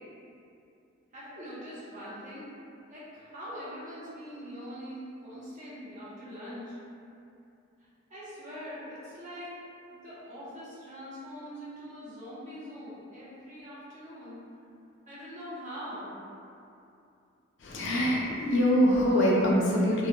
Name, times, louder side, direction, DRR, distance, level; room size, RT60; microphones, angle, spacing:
voice 1, 1.1-2.5 2.9-6.8 8.1-9.5 9.9-14.4 15.1-16.2, equal, 40° right, -10 dB, 0.7 m, -43 dB
voice 2, 17.6-20.1, equal, 65° left, -4 dB, 0.4 m, -24 dB
2.2 x 2.1 x 2.7 m, 2.7 s
head